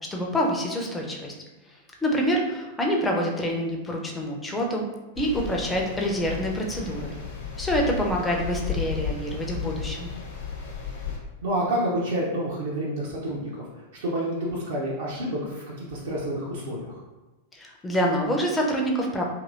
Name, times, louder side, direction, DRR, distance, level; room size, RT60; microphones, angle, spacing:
voice 1, 0.1-1.3 2.0-4.8 5.2-7.1 7.6-10.1 17.5-19.2, equal, 10° left, 0 dB, 0.5 m, -26 dB
sound 1, 5.1-11.2, left 6 dB, 50° left, 0.7 m, -34 dB
voice 2, 11.4-13.5 14.0-17.0, right 1 dB, 60° right, -5 dB, 0.6 m, -28 dB
2.9 x 2.8 x 2.5 m, 1.1 s
figure-of-eight pair, 95°, 0 cm